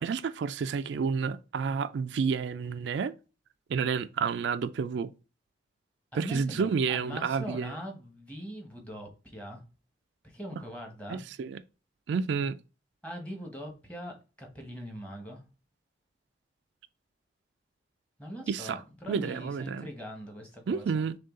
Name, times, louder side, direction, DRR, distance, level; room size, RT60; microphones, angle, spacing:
voice 1, 0.0-3.1 3.7-5.1 6.1-7.7 11.1-11.6 12.1-12.6 18.5-18.8 19.1-19.9 20.7-21.2, right 5 dB, 75° right, 0.3 m, -30 dB
voice 2, 6.1-9.6 10.2-11.2 13.0-15.4 18.2-21.0, equal, 5° left, 1.1 m, -41 dB
6.3 x 2.3 x 3.6 m
head